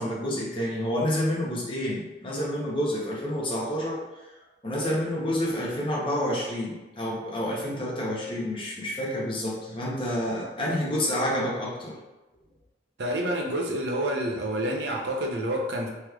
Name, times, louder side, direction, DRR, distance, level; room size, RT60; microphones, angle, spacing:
voice 1, 0.0-4.0 4.6-12.0, equal, 30° left, -4 dB, 0.7 m, -29 dB
voice 2, 13.0-15.9, right 1 dB, 75° right, 0 dB, 0.6 m, -28 dB
3.3 x 3.0 x 2.3 m, 1.1 s
head